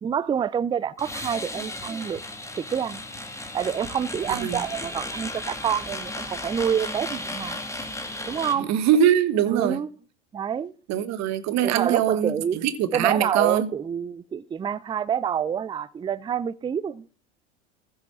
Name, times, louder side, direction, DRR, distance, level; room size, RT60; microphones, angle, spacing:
voice 1, 0.0-2.2 2.5-3.0 3.5-7.6 8.3-8.7 9.4-9.9 10.3-10.7 11.6-12.6 12.9-17.1, right 8 dB, 15° right, 0.4 m, -27 dB
sound 1, 1.0-8.5, left 2 dB, 10° left, 2.1 m, -35 dB
voice 2, 4.3-4.6 8.6-9.8 10.9-13.7, right 9 dB, 45° right, 1.5 m, -23 dB
15.0 x 6.3 x 5.9 m
hypercardioid pair, 80°, 36 cm